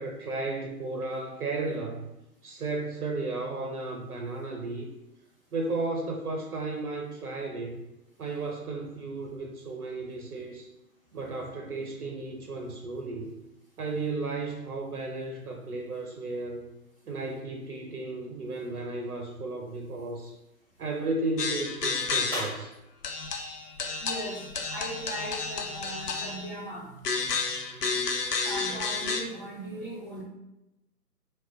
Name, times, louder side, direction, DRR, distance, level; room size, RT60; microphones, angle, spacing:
voice 1, 0.0-2.1 2.4-4.9 5.5-7.8 8.2-10.7 11.1-13.3 13.8-16.7 17.1-20.4 20.8-22.7, right 3 dB, 70° right, 2 dB, 0.6 m, -34 dB
sound 1, 20.3-24.6, equal, 5° left, 0.8 m, -45 dB
sound 2, 21.4-22.6 23.0-26.6 27.0-29.2, left 4 dB, 80° left, 0.6 m, -31 dB
voice 2, 24.0-27.0 28.4-30.2, right 1 dB, 35° left, -6 dB, 0.7 m, -38 dB
2.2 x 2.2 x 3.4 m, 0.92 s
figure-of-eight pair, 140°, 47 cm